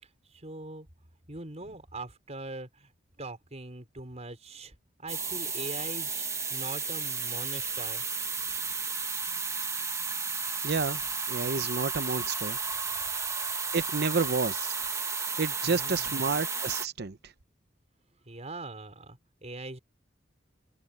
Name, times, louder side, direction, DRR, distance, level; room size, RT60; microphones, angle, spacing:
voice 1, 0.3-0.9 1.3-2.9 3.2-8.0 15.6-16.2 18.3-19.8, right 2 dB, 35° right, 5.3 m, -42 dB
sound 1, 5.1-16.9, right 5 dB, 15° right, 1.1 m, -33 dB
voice 2, 10.6-11.0 11.3-12.6 13.7-14.7 15.4-17.2, right 4 dB, 60° right, 0.8 m, -30 dB
head